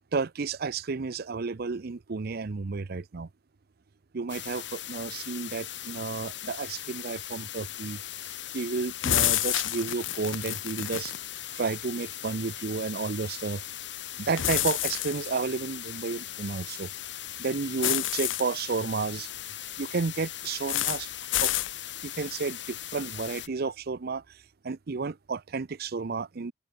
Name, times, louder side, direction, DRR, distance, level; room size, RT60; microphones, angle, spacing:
voice 1, 0.1-3.3 4.1-8.0 8.5-11.1 11.5-13.6 14.2-16.9 17.4-19.3 19.8-21.1 21.4-21.5 22.0-26.5, right 4 dB, 55° right, 0.6 m, -32 dB
sound 1, 4.3-23.5, left 12 dB, 65° left, 5.7 m, -39 dB
sound 2, 9.0-11.2 14.4-15.3 17.8-18.4 20.7-21.0 21.3-21.7, left 13 dB, 80° left, 0.8 m, -28 dB
open air
head